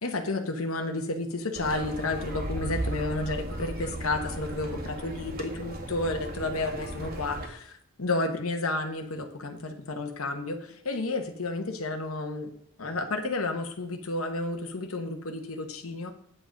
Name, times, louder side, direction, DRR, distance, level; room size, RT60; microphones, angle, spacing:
voice 1, 0.0-12.5 12.8-16.1, left 2 dB, 85° left, 5 dB, 1.1 m, -31 dB
sound 1, 1.5-7.5, right 1 dB, 45° right, 1.8 m, -36 dB
8.7 x 7.6 x 5.2 m, 0.68 s
head